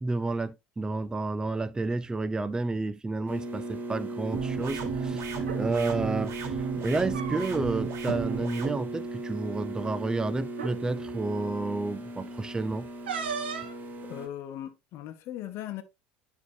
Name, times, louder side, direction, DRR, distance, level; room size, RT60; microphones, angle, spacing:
voice 1, 0.0-6.6 6.8-12.9, right 3 dB, 15° right, 0.5 m, -31 dB
sound 1, 3.3-14.3, right 2 dB, 30° right, 1.6 m, -37 dB
sound 2, 4.3-8.7, right 6 dB, 55° right, 1.9 m, -33 dB
sound 3, 5.5-5.6 6.9-7.8 8.0-8.2 8.6-8.8 9.8-9.9 10.5-10.8 13.1-13.8, right 6 dB, 85° right, 1.2 m, -35 dB
voice 2, 14.0-15.8, left 12 dB, 55° left, 1.0 m, -38 dB
10.5 x 3.7 x 2.7 m
hypercardioid pair, 80°, 5 cm